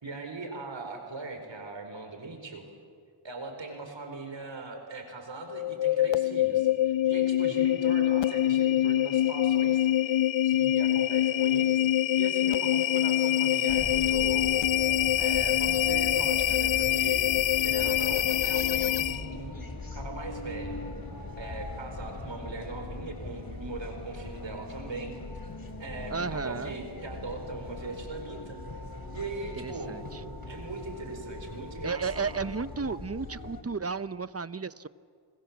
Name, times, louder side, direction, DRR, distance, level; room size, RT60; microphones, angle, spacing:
voice 1, 0.0-2.7 3.2-10.2 10.4-11.9 12.2-14.5 15.1-17.3 17.6-20.8 21.4-25.2 25.8-28.6 29.1-30.0 30.5-32.4, right 3 dB, 65° right, 4 dB, 4.6 m, -40 dB
sound 1, 5.5-19.4, left 12 dB, 65° left, 0.7 m, -25 dB
sound 2, 13.7-33.6, left 2 dB, 45° left, 4.0 m, -40 dB
voice 2, 26.1-26.8 29.6-30.2 31.8-34.9, right 5 dB, 30° right, 15 dB, 0.9 m, -33 dB
30.0 x 26.0 x 7.4 m, 2.2 s
cardioid pair, 50°, 49 cm